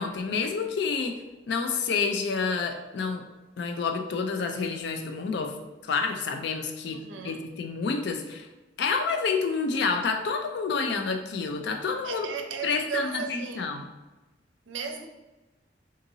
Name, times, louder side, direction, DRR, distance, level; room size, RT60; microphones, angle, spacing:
voice 1, 0.0-3.2 3.6-5.5 5.8-7.0 7.2-8.5 8.8-12.3 12.6-13.8, left 4 dB, 60° left, 6 dB, 0.4 m, -29 dB
voice 2, 6.9-7.5 12.0-13.7 14.7-15.1, right 5 dB, 85° right, 4 dB, 0.5 m, -35 dB
3.7 x 2.6 x 2.7 m, 1.1 s
head